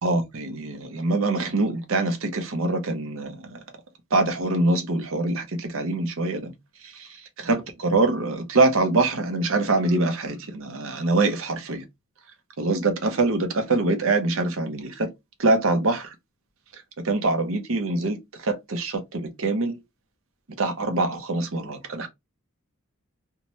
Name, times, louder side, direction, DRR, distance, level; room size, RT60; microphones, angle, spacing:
voice 1, 0.0-3.6 4.1-6.5 6.8-7.1 7.4-11.8 12.6-15.1 15.4-16.1 17.0-19.8 20.6-22.1, right 2 dB, 65° right, 0.7 m, -24 dB
2.7 x 2.2 x 2.9 m
head